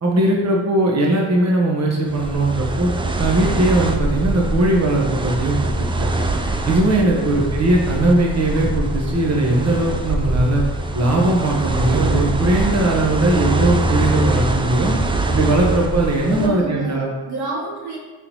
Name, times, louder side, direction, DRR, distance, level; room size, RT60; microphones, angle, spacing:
voice 1, 0.0-2.9 3.2-5.7 6.0-6.1 6.6-10.6 10.9-14.9 15.3-17.1, right 1 dB, 40° right, -2 dB, 1.1 m, -19 dB
sound 1, 2.1-16.5, right 2 dB, 15° right, 0.4 m, -23 dB
voice 2, 7.0-7.4 16.3-18.0, right 3 dB, 70° right, -3 dB, 0.9 m, -29 dB
3.9 x 3.5 x 3.0 m, 1.3 s
supercardioid pair, 45°, 41 cm